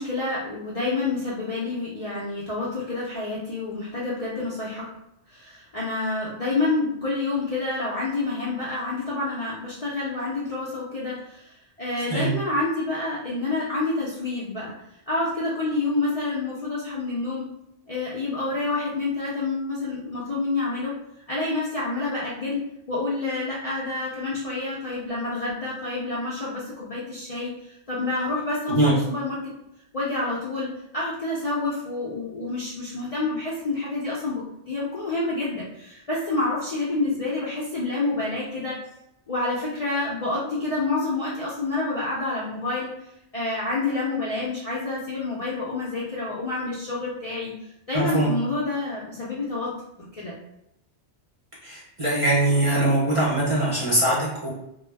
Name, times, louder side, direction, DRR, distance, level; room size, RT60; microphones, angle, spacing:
voice 1, 0.0-4.9 5.3-11.5 11.8-14.7 15.1-17.5 17.9-20.9 21.3-22.6 22.9-29.5 29.9-38.8 39.3-42.9 43.3-47.5 47.9-49.7 50.0-50.4, left 2 dB, 50° left, -7 dB, 0.4 m, -28 dB
voice 2, 47.9-48.3 51.6-54.5, right 1 dB, 40° right, -6 dB, 0.5 m, -22 dB
2.2 x 2.0 x 3.2 m, 0.81 s
omnidirectional pair, 1.2 m